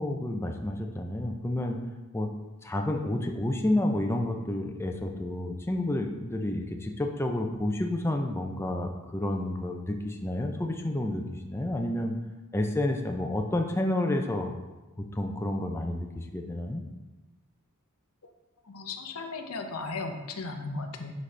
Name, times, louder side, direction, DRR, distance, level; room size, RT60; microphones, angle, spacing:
voice 1, 0.0-1.8 2.1-2.3 2.6-12.2 12.5-14.5 15.1-16.8, left 1 dB, 10° left, 3 dB, 0.5 m, -30 dB
voice 2, 18.7-21.1, left 3 dB, 80° left, 6 dB, 0.8 m, -36 dB
11.0 x 4.1 x 3.3 m, 1.1 s
head